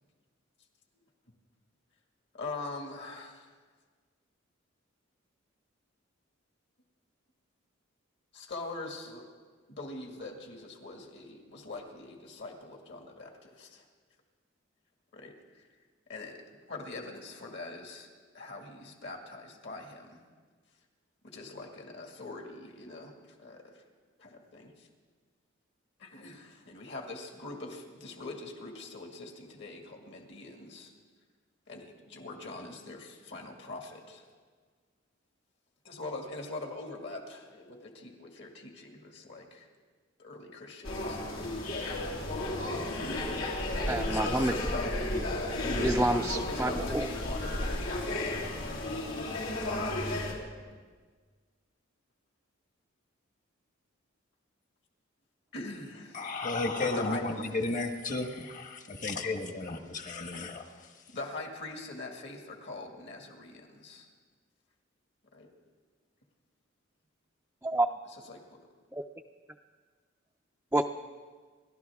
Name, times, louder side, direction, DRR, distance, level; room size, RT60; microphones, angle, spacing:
voice 1, 2.3-3.5 8.3-9.3 9.7-13.8 15.1-15.7 16.1-16.4 16.7-20.2 21.2-23.8 24.2-24.9 26.0-30.9 31.7-34.2 35.8-39.7 40.2-41.6 44.1-45.1 46.2-49.2 50.0-50.5 55.5-56.3 56.8-57.6 61.1-64.1 65.3-65.5 68.0-68.6, left 2 dB, 60° left, 2 dB, 2.1 m, -43 dB
sound 1, 40.8-50.3, left 1 dB, 90° left, 3.2 m, -33 dB
voice 2, 43.9-44.5 45.8-47.1 67.6-67.9 68.9-69.0 70.7-70.8, right 1 dB, 10° right, 3 dB, 0.4 m, -28 dB
voice 3, 56.1-60.7, left 3 dB, 40° left, 6 dB, 1.3 m, -33 dB
29.0 x 12.0 x 3.6 m, 1.5 s
head